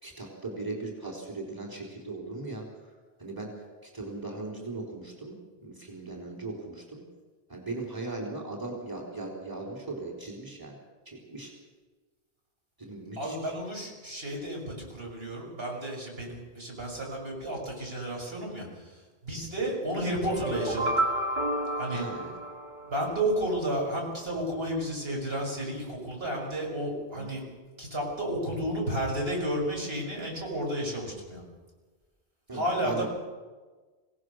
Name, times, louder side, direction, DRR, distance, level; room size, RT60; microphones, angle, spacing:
voice 1, 0.0-2.7 3.2-3.5 3.8-7.0 7.5-10.7 11.1-11.5 12.8-13.4 21.9-22.3 27.1-27.3 32.5-33.1, right 2 dB, 20° right, -2 dB, 4.0 m, -38 dB
voice 2, 13.2-20.9 21.7-22.1 22.9-27.4 27.8-31.4 32.5-33.1, right 1 dB, 70° right, -2 dB, 6.5 m, -32 dB
sound 1, 20.2-23.2, right 1 dB, 50° right, 2.0 m, -31 dB
26.5 x 17.5 x 6.4 m, 1.3 s
omnidirectional pair, 1.1 m